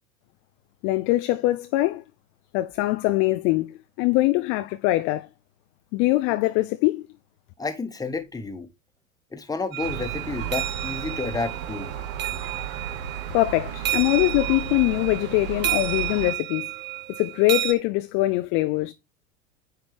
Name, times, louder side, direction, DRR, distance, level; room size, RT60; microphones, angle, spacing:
voice 1, 0.8-2.0 2.5-5.3 5.9-7.1 13.3-16.7 17.2-18.9, left 18 dB, 30° left, 0.4 m, -23 dB
voice 2, 7.6-8.7 9.3-11.9, left 4 dB, 10° left, 1.2 m, -30 dB
sound 1, 9.7-17.7, right 14 dB, 25° right, 1.0 m, -31 dB
Gull seagull, 9.8-16.3, right 8 dB, 55° right, 1.4 m, -34 dB
9.1 x 4.6 x 3.3 m
figure-of-eight pair, 85°, 42 cm